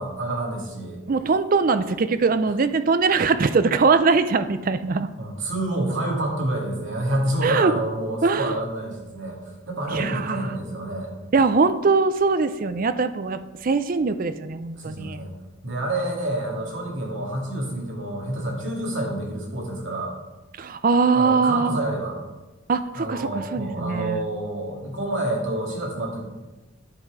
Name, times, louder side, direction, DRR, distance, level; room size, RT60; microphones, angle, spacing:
voice 1, 0.0-1.0 5.2-9.4 9.7-11.1 14.8-15.3 15.6-20.1 21.1-22.2 22.9-26.2, right 1 dB, 60° right, -1 dB, 2.1 m, -28 dB
voice 2, 1.1-5.1 7.4-7.7 8.2-8.6 9.9-10.5 11.3-15.2 20.6-21.8 22.7-24.3, right 4 dB, 40° right, 11 dB, 0.4 m, -21 dB
9.8 x 5.8 x 4.9 m, 1.1 s
head